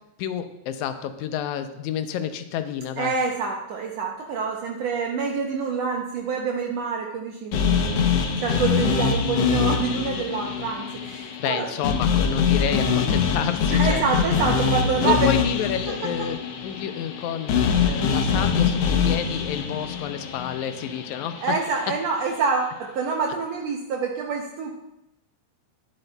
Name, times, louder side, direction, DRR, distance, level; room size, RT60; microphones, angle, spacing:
voice 1, 0.2-3.1 11.4-14.0 15.0-16.4 16.6-21.6, left 9 dB, 85° left, 9 dB, 2.0 m, -29 dB
voice 2, 3.0-11.7 13.7-15.3 17.9-18.0 21.4-24.7, right 5 dB, 75° right, 1 dB, 1.7 m, -27 dB
sound 1, 7.5-21.7, left 6 dB, 70° left, 1.7 m, -24 dB
11.5 x 9.9 x 2.2 m, 0.85 s
omnidirectional pair, 3.3 m